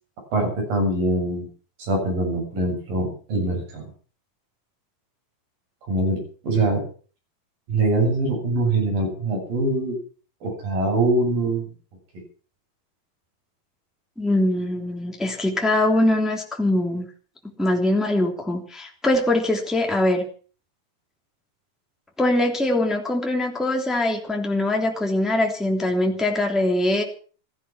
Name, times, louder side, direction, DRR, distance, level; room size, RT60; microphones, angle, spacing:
voice 1, 0.3-1.4 1.8-3.8 5.9-6.2 6.4-6.8 7.7-10.0 10.4-11.7, right 2 dB, 65° right, 2 dB, 9.1 m, -23 dB
voice 2, 14.2-17.1 17.6-20.2 22.2-27.0, left 1 dB, ahead, 1 dB, 2.5 m, -22 dB
16.0 x 15.0 x 6.2 m, 0.41 s
omnidirectional pair, 4.4 m